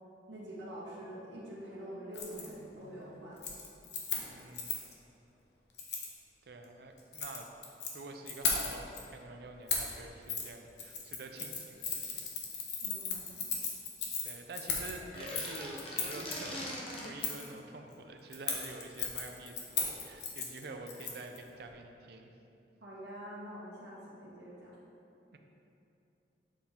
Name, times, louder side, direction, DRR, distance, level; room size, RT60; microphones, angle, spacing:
voice 1, 0.3-3.4 12.8-13.5 22.8-24.7, right 1 dB, 90° right, -8 dB, 1.2 m, -46 dB
Keys jangling, 2.1-2.5 2.8-3.1 3.4-4.9 5.8-6.1 7.0-7.9 8.3-9.0 9.7-9.9 10.3-10.5 10.8-16.3 17.2-17.5 18.3-21.4 21.7-21.8, left 5 dB, 70° left, 0.9 m, -36 dB
voice 2, 4.2-4.8 6.5-7.5 7.9-12.3 14.2-22.3 25.3-25.4, right 2 dB, 60° right, 4 dB, 0.5 m, -47 dB
sound 1, 15.0-17.3, left 1 dB, 30° left, 0.9 m, -41 dB
7.5 x 4.4 x 3.6 m, 2.7 s
head